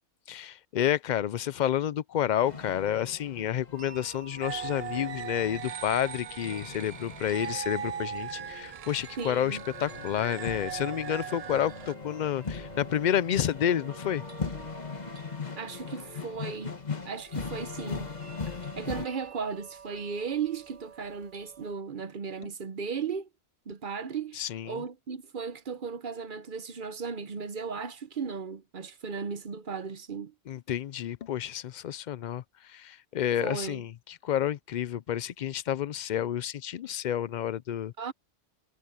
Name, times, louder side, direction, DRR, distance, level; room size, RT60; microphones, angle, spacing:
voice 1, 0.3-14.2 24.4-24.8 30.5-37.9, left 10 dB, 60° left, 0.5 m, -30 dB
sound 1, 2.4-19.1, left 5 dB, 35° left, 1.5 m, -40 dB
sound 2, 3.7-21.8, right 6 dB, 30° right, 1.2 m, -52 dB
sound 3, 4.4-11.9, right 9 dB, 70° right, 0.3 m, -39 dB
voice 2, 9.2-9.6 15.6-16.8 17.0-18.1 18.8-23.3 23.7-30.3 33.4-33.8 38.0-38.1, right 5 dB, 50° right, 0.9 m, -36 dB
omnidirectional pair, 1.2 m